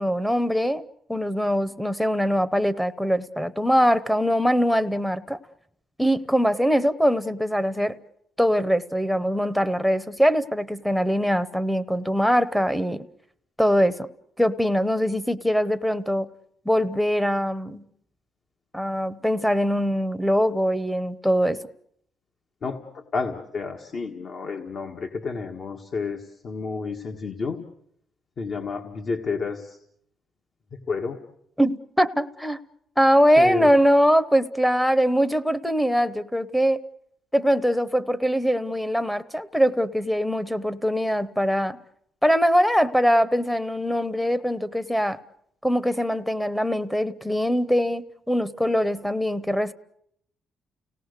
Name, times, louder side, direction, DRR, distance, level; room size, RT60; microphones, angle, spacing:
voice 1, 0.0-5.4 6.0-8.0 8.4-13.0 13.6-14.1 14.4-16.3 16.6-17.8 18.7-21.6 31.6-32.6 33.0-36.8 37.3-41.8 42.2-45.2 45.6-49.7, equal, 5° left, 0.9 m, -22 dB
voice 2, 22.6-27.6 28.4-29.8 30.9-31.2 33.4-33.7, left 4 dB, 55° left, 1.6 m, -30 dB
30.0 x 18.0 x 6.7 m
cardioid pair, 90°, 0 cm